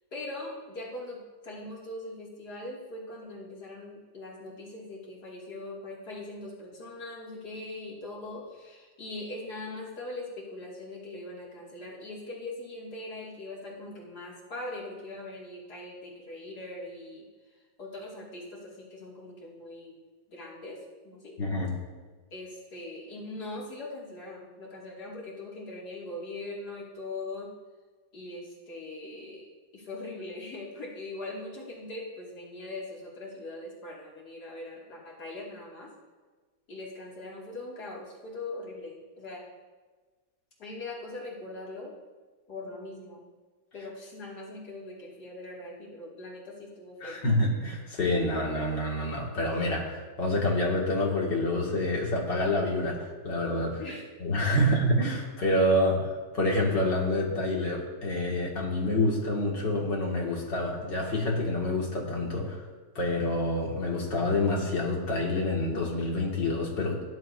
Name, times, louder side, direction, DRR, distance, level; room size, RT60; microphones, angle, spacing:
voice 1, 0.1-17.3 17.8-19.9 20.3-21.4 22.3-27.5 28.1-29.5 29.7-35.9 36.7-39.5 40.6-42.0 42.5-43.2 43.7-47.2 53.8-54.0 54.5-54.7 55.7-55.8, left 2 dB, 65° left, -5 dB, 3.2 m, -41 dB
voice 2, 21.4-21.7 47.0-53.8 54.2-56.1 56.3-62.6 62.9-67.0, left 1 dB, 85° left, -2 dB, 3.0 m, -27 dB
17.0 x 11.0 x 2.7 m, 1.4 s
omnidirectional pair, 1.9 m